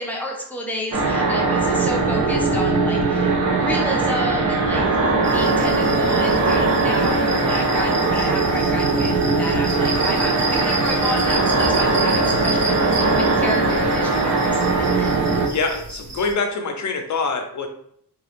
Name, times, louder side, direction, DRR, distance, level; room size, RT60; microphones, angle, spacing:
voice 1, 0.0-4.8 5.2-15.1, left 1 dB, 5° left, -2 dB, 0.6 m, -31 dB
sound 1, 0.9-15.5, right 3 dB, 50° right, 0.6 m, -20 dB
sound 2, 5.2-16.3, right 2 dB, 30° right, 1.0 m, -31 dB
voice 2, 15.5-17.7, left 4 dB, 45° left, 5 dB, 0.6 m, -25 dB
2.9 x 2.3 x 3.3 m, 0.68 s
wide cardioid pair, 125°, 40 cm